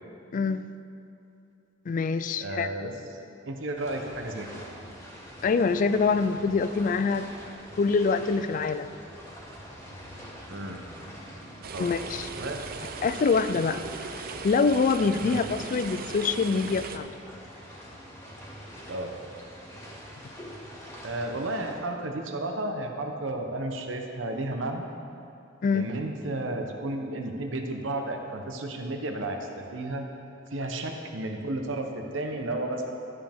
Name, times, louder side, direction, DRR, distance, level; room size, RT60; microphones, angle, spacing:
voice 1, 0.3-0.7 1.9-2.7 5.4-7.3 7.8-8.9 11.8-12.3 13.0-13.8 14.4-17.1 25.6-26.0, left 4 dB, 45° left, 12 dB, 0.3 m, -25 dB
voice 2, 2.4-2.9 3.4-4.5 10.5-10.8 11.7-12.0 12.4-12.6 15.2-15.4 18.9-19.1 21.0-24.9 25.7-30.1 30.5-32.9, right 2 dB, 75° right, 3 dB, 0.9 m, -32 dB
sound 1, 3.7-21.7, equal, 15° left, 1.9 m, -45 dB
sound 2, 11.6-17.0, right 5 dB, 50° right, 0.5 m, -38 dB
12.5 x 7.5 x 3.6 m, 2.7 s
head